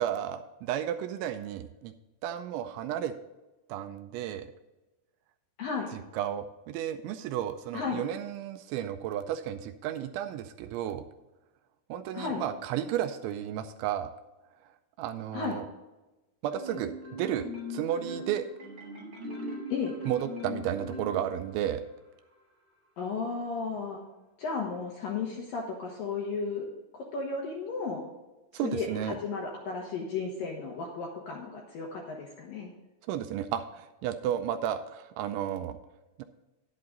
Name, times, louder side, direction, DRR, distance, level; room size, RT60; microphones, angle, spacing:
voice 1, 0.0-1.9 2.2-3.1 3.7-4.5 5.9-11.0 11.9-14.1 15.0-15.7 16.4-18.5 20.1-21.8 28.5-29.2 33.1-35.8 36.2-36.3, right 10 dB, 85° right, 9 dB, 2.8 m, -33 dB
voice 2, 5.6-5.9 7.7-8.0 12.1-12.4 15.3-15.6 19.7-20.0 23.0-24.0 24.4-26.7 26.9-28.0 28.6-32.7, left 4 dB, 70° left, -1 dB, 2.1 m, -34 dB
Marimba xylophone, 16.5-21.7, left 1 dB, 30° right, 2.5 m, -40 dB
11.0 x 8.5 x 3.9 m, 1.1 s
omnidirectional pair, 5.6 m